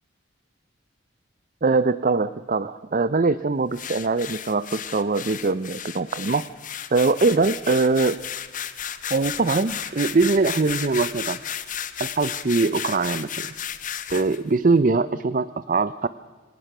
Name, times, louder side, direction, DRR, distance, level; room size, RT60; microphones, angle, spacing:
voice 1, 1.6-6.4 6.9-8.2 9.1-11.4 12.0-13.5 14.1-16.1, right 3 dB, 40° right, 15 dB, 0.5 m, -22 dB
sound 1, 3.7-14.4, left 9 dB, 40° left, 1.1 m, -33 dB
25.5 x 18.0 x 6.0 m, 1.4 s
head